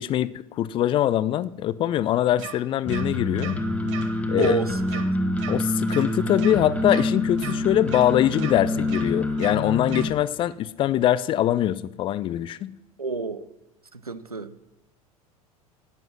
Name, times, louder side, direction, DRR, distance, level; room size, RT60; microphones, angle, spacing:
voice 1, 0.0-3.6 4.3-4.6 5.5-12.7, left 12 dB, 30° left, 0.4 m, -23 dB
sound 1, 2.4-2.5 2.9-3.0 3.4-3.5 3.9-4.0 4.4-4.5 4.9-5.0 5.4-5.5 5.9-6.0 6.4-6.5 6.9-7.0 7.4-7.5 7.9-8.0 8.4-8.5 8.9-9.0 9.4-9.5 9.9-10.0, right 10 dB, 55° right, 1.4 m, -35 dB
sound 2, 2.9-10.1, left 1 dB, 5° left, 1.4 m, -26 dB
voice 2, 4.4-5.0 13.0-13.5 13.9-14.5, right 4 dB, 85° right, 0.7 m, -29 dB
11.0 x 9.1 x 6.0 m
figure-of-eight pair, 80°, 19 cm